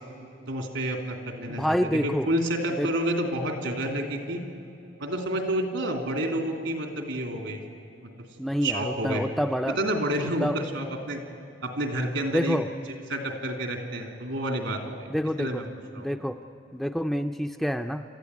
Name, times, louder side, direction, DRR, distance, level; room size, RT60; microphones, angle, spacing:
voice 1, 0.5-4.4 5.0-7.6 8.6-9.2 9.8-11.2 11.6-12.6 13.1-15.1 15.4-15.6 15.9-16.1, right 1 dB, 75° right, 4 dB, 2.9 m, -29 dB
voice 2, 1.5-2.3 2.8-2.9 8.4-9.8 10.4-10.6 12.3-12.7 15.1-15.6 16.0-16.4 16.7-18.0, equal, ahead, 6 dB, 0.4 m, -27 dB
27.5 x 13.0 x 9.5 m, 2.8 s
head